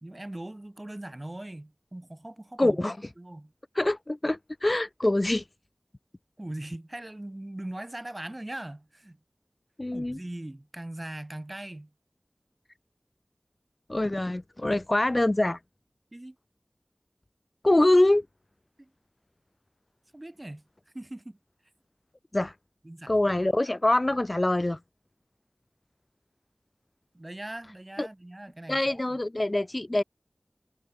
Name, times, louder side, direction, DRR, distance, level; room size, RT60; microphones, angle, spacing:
voice 1, 0.0-2.8 3.2-3.5 6.4-9.2 9.9-11.9 16.1-16.4 18.8-18.9 20.1-20.6 20.9-21.4 22.8-23.1 27.1-29.2, right 1 dB, 30° right, 1.9 m, -40 dB
voice 2, 2.6-3.0 3.8-5.4 9.8-10.2 13.9-15.6 17.6-18.3 22.3-22.5 23.1-24.8 28.0-28.1 28.7-30.0, left 1 dB, 40° left, 0.7 m, -24 dB
wide cardioid pair, 55°, 0 cm